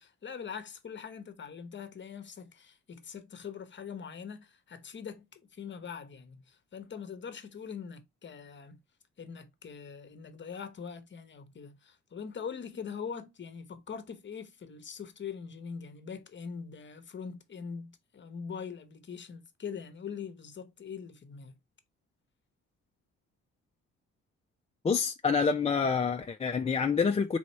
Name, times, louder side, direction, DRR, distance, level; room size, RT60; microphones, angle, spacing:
voice 1, 0.0-8.8 9.2-21.6, left 6 dB, 40° left, 0.9 m, -42 dB
voice 2, 24.8-27.4, left 5 dB, 20° left, 0.4 m, -27 dB
4.1 x 3.6 x 3.0 m
cardioid pair, 90°, 30 cm